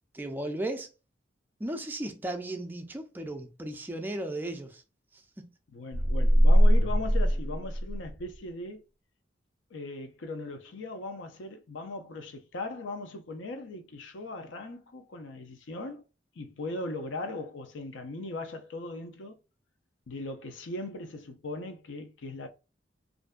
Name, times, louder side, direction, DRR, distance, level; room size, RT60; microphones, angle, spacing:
voice 1, 0.1-0.9 1.6-4.8 5.1-5.5, right 1 dB, 10° right, 0.3 m, -36 dB
voice 2, 5.7-8.8 9.7-16.0 16.4-19.4 20.1-22.5, left 2 dB, 85° left, 0.5 m, -39 dB
sound 1, 5.9-8.3, equal, 35° left, 0.7 m, -22 dB
2.5 x 2.1 x 2.3 m
head